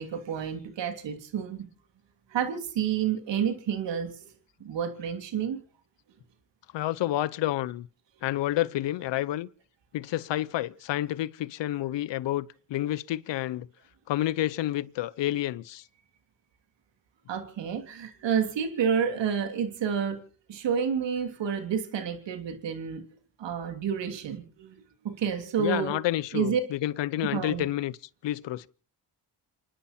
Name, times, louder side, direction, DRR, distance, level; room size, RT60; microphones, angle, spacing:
voice 1, 0.0-1.7 2.3-4.2 4.6-5.6 17.3-20.2 20.5-23.0 23.4-24.8 25.0-26.0 26.3-26.6 27.2-27.6, right 7 dB, 80° right, 2.9 m, -29 dB
voice 2, 6.7-7.9 8.2-9.5 9.9-13.7 14.1-15.8 25.6-27.9 28.2-28.7, left 14 dB, 85° left, 0.8 m, -29 dB
29.0 x 10.0 x 4.3 m
supercardioid pair, 50°, 42 cm